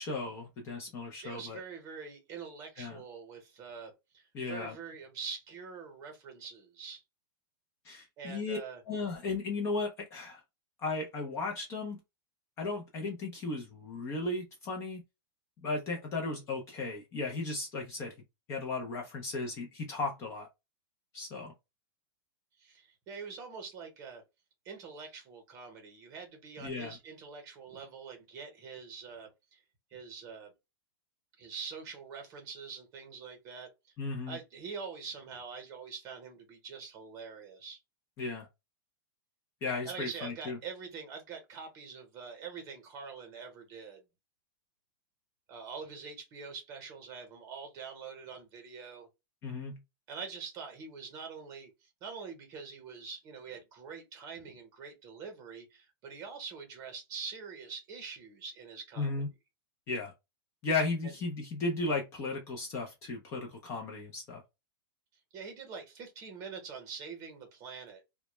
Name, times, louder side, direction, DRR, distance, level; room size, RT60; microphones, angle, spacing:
voice 1, 0.0-1.6 2.8-3.0 4.3-4.7 7.8-8.6 8.9-10.4 10.8-12.0 12.6-15.0 15.6-18.1 18.5-20.5 21.1-21.5 26.6-27.0 34.0-34.4 38.2-38.5 39.6-40.6 49.4-49.8 59.0-59.3 59.9-60.1 60.6-64.4, left 3 dB, 20° left, 0.4 m, -35 dB
voice 2, 1.2-7.0 8.2-8.8 22.6-24.2 24.6-29.6 29.9-30.5 31.4-33.7 34.3-37.8 39.8-44.0 45.5-49.1 50.1-59.2 65.3-68.0, right 5 dB, 25° right, 0.9 m, -45 dB
2.1 x 2.0 x 2.9 m
supercardioid pair, 165°, 12 cm